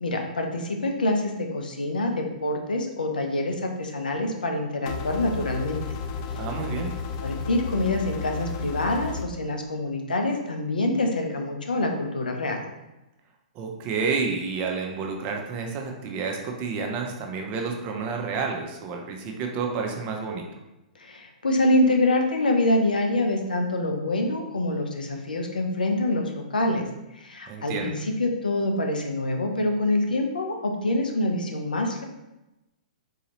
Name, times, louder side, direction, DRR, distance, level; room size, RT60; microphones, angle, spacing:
voice 1, 0.0-5.8 6.3-6.4 7.2-12.6 21.0-26.9 27.1-32.0, left 1 dB, 85° left, 3 dB, 0.7 m, -26 dB
sound 1, 4.9-9.2, left 5 dB, 40° left, 0.4 m, -33 dB
voice 2, 6.3-6.9 13.5-20.4 27.5-28.0, right 5 dB, 35° right, 2 dB, 0.7 m, -30 dB
4.0 x 2.7 x 3.0 m, 0.97 s
hypercardioid pair, 120°, 5 cm